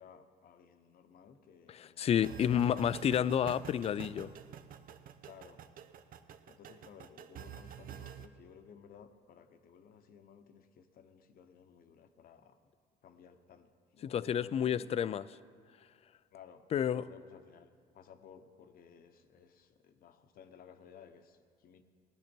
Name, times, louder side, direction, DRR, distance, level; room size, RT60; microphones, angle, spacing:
voice 1, 0.0-2.8 5.2-5.6 6.5-12.7 13.0-15.0 16.3-16.7 16.9-21.8, left 7 dB, 60° left, 8 dB, 1.0 m, -57 dB
voice 2, 1.7-4.3 14.0-15.2 16.7-17.0, left 9 dB, 40° left, 17 dB, 0.4 m, -30 dB
sound 1, 2.1-8.3, right 9 dB, 55° right, 0.7 m, -48 dB
17.5 x 10.5 x 4.5 m, 2.1 s
cardioid pair, 110°, 17 cm